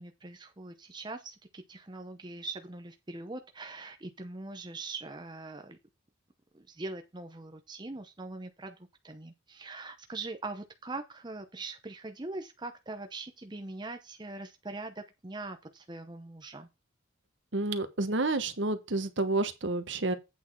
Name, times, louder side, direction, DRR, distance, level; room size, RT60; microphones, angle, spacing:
voice 1, 0.0-5.8 6.5-16.7, right 2 dB, 20° right, 0.7 m, -42 dB
voice 2, 17.5-20.1, right 2 dB, 60° right, 1.1 m, -29 dB
8.5 x 6.1 x 4.5 m
head